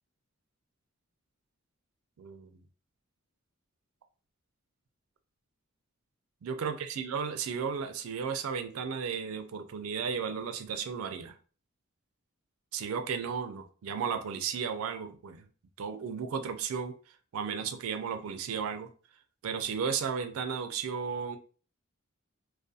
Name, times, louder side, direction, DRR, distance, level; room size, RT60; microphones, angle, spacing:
voice 1, 2.2-2.5 6.4-11.3 12.7-15.4 15.8-16.9 17.3-18.9 19.4-21.4, right 6 dB, 85° right, 8 dB, 0.4 m, -34 dB
2.4 x 2.2 x 2.6 m, 0.38 s
head